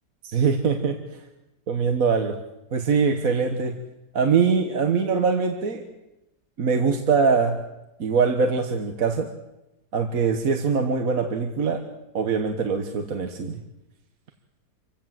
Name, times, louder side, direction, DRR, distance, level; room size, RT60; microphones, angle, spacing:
voice 1, 0.2-1.0 1.7-2.3 2.7-3.7 4.1-5.8 6.6-7.6 8.0-9.3 9.9-11.8 12.1-13.6, right 5 dB, 55° right, 6 dB, 1.7 m, -22 dB
26.5 x 16.0 x 7.6 m, 0.94 s
omnidirectional pair, 1.8 m